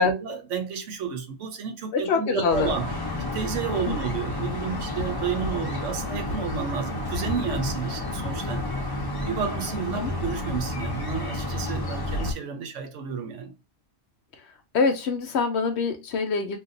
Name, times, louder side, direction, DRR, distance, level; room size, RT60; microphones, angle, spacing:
voice 1, 0.0-2.9 3.3-8.7 9.3-13.6, right 6 dB, 75° right, 1.0 m, -31 dB
voice 2, 1.9-2.7 3.7-3.8 9.9-10.1 14.7-16.6, left 4 dB, 65° left, 0.8 m, -24 dB
sound 1, 2.5-12.3, left 2 dB, 30° left, 0.5 m, -30 dB
2.6 x 2.3 x 3.7 m
omnidirectional pair, 1.3 m